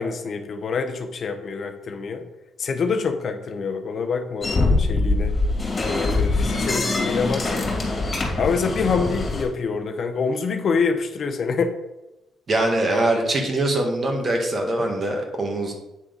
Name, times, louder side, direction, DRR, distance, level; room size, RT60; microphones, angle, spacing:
voice 1, 0.0-2.2 2.6-5.4 5.8-7.7 8.4-11.8 12.9-13.0, left 5 dB, 55° left, 6 dB, 0.8 m, -26 dB
sound 1, 4.4-9.4, left 2 dB, 30° left, 2.3 m, -23 dB
voice 2, 12.5-15.8, right 2 dB, 40° right, 2 dB, 1.6 m, -23 dB
8.5 x 3.6 x 5.2 m, 0.96 s
cardioid pair, 90°, 0 cm